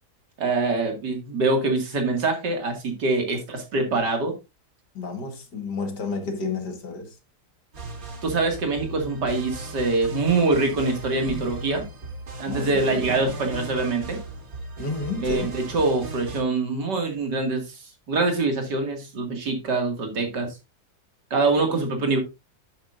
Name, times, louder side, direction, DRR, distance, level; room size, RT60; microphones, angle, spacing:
voice 1, 0.4-4.3 8.2-11.9 12.4-14.2 15.2-17.6 18.1-20.6 21.3-22.2, right 3 dB, 85° right, 2.9 m, -24 dB
voice 2, 4.9-7.1 12.5-13.5 14.8-15.5, left 3 dB, 80° left, 2.4 m, -31 dB
sound 1, 7.7-16.4, right 2 dB, 55° right, 2.3 m, -37 dB
10.5 x 8.8 x 2.6 m
omnidirectional pair, 1.8 m